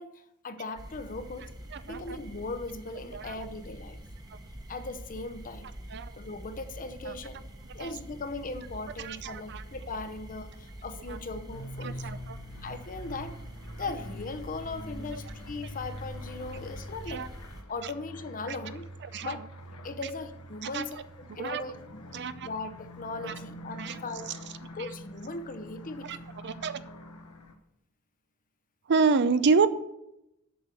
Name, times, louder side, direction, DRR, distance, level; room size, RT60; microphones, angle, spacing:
voice 1, 0.0-1.5 1.9-4.0 4.7-5.7 6.2-7.4 7.7-12.1 12.6-13.3 13.7-17.3 17.7-18.9 19.2-19.4 19.8-24.3 24.7-26.3, left 3 dB, 40° left, 9 dB, 0.8 m, -39 dB
sound 1, 0.8-17.6, right 1 dB, 20° right, 1.2 m, -46 dB
voice 2, 1.7-2.2 3.1-3.3 5.9-6.1 7.1-7.2 7.8-7.9 9.0-9.6 11.1-11.2 11.8-12.4 17.1-17.3 19.1-19.3 20.6-20.8 21.4-21.6 22.1-22.5 23.2-23.3 23.8-24.0 26.0-26.2 26.4-26.8 28.9-29.7, right 4 dB, 50° right, 13 dB, 0.5 m, -28 dB
sound 2, 11.5-27.5, left 1 dB, 75° left, 1.2 m, -45 dB
7.9 x 6.4 x 6.8 m, 0.85 s
head